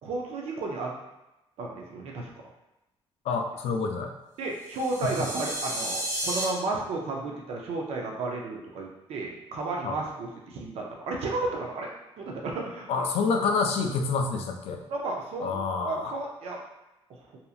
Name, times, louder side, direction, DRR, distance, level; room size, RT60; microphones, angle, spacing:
voice 1, 0.0-0.9 1.6-2.3 4.4-11.9 12.2-13.1 14.8-16.6, right 3 dB, 70° right, 0 dB, 0.5 m, -33 dB
voice 2, 3.3-4.1 5.0-5.1 9.8-10.0 12.9-14.8 15.4-16.1, left 4 dB, 70° left, 4 dB, 0.4 m, -27 dB
sound 1, 4.6-6.4, right 1 dB, 35° right, 0.9 m, -32 dB
2.8 x 2.5 x 2.4 m, 0.96 s
cardioid pair, 125°, 11 cm